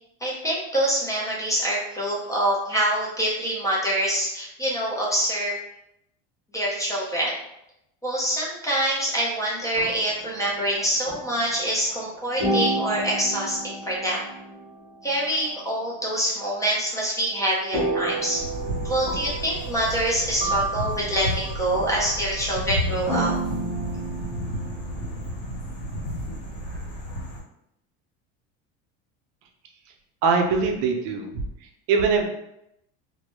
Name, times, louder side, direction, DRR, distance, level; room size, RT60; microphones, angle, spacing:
voice 1, 0.2-5.5 6.5-7.3 8.0-14.2 15.0-18.4 18.8-23.3, right 1 dB, 10° left, -5 dB, 0.4 m, -25 dB
sound 1, 9.6-12.1 12.4-15.5 17.7-25.9, right 2 dB, 20° right, 0.7 m, -31 dB
sound 2, 18.4-27.4, equal, 80° left, 1.2 m, -32 dB
voice 2, 30.2-31.3 31.9-32.3, right 4 dB, 60° right, 3 dB, 0.5 m, -21 dB
2.1 x 2.0 x 3.0 m, 0.82 s
supercardioid pair, 140°, 29 cm